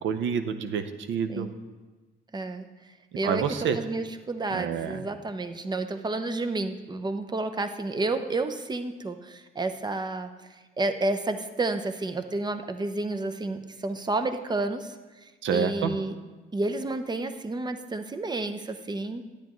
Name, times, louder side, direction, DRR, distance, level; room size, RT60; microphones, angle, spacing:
voice 1, 0.0-1.5 3.2-3.8 4.5-5.0 15.4-15.9, right 7 dB, 75° right, 10 dB, 0.7 m, -28 dB
voice 2, 2.3-2.7 3.2-10.3 10.8-14.9 15.2-16.1 16.5-19.3, right 2 dB, 20° right, 8 dB, 0.6 m, -30 dB
10.0 x 8.5 x 3.0 m, 1.3 s
cardioid pair, 90°, 20 cm